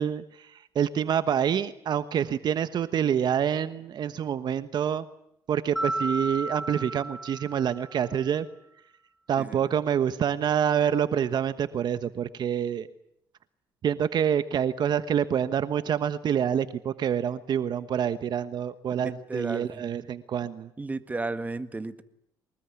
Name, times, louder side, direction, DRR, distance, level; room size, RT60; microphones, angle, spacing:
voice 1, 0.0-5.1 5.5-8.5 9.3-12.9 13.8-20.7, right 8 dB, 55° right, 12 dB, 1.2 m, -27 dB
Mallet percussion, 5.8-8.1, right 1 dB, ahead, 3.3 m, -33 dB
voice 2, 19.0-19.7 20.8-22.0, right 3 dB, 20° right, 10 dB, 1.7 m, -33 dB
23.5 x 20.5 x 9.8 m, 0.75 s
cardioid pair, 95°, 9 cm